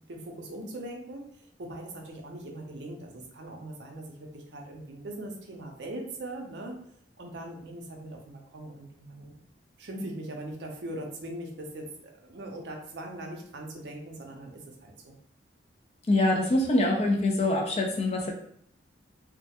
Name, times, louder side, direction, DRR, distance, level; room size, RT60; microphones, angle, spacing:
voice 1, 0.1-6.8 7.2-9.4 9.8-11.9 12.2-15.2, right 1 dB, 65° right, 1 dB, 0.5 m, -40 dB
voice 2, 16.1-18.3, left 2 dB, 35° left, 0 dB, 0.4 m, -24 dB
2.2 x 2.0 x 2.8 m, 0.65 s
head